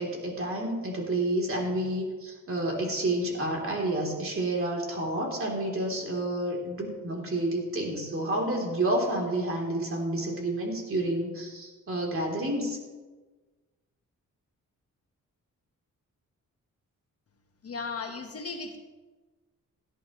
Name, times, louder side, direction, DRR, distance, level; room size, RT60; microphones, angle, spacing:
voice 1, 0.0-12.8, right 1 dB, 45° right, -1 dB, 3.5 m, -29 dB
voice 2, 17.6-18.8, left 4 dB, 50° left, 3 dB, 1.6 m, -36 dB
17.0 x 11.5 x 3.2 m, 1.3 s
cardioid pair, 100°, 31 cm